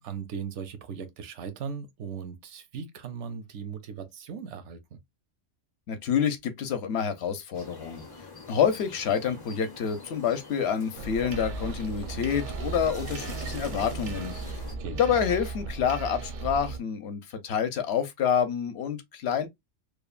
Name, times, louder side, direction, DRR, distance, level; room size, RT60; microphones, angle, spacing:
voice 1, 0.0-5.0 14.7-15.2, right 6 dB, 80° right, 0.9 m, -38 dB
voice 2, 5.9-14.6 14.9-19.5, left 7 dB, 70° left, 0.8 m, -28 dB
sound 1, 7.5-14.8, left 3 dB, 30° left, 0.5 m, -45 dB
sound 2, 11.0-16.8, right 4 dB, 55° right, 0.5 m, -36 dB
3.1 x 2.1 x 2.3 m
omnidirectional pair, 1.2 m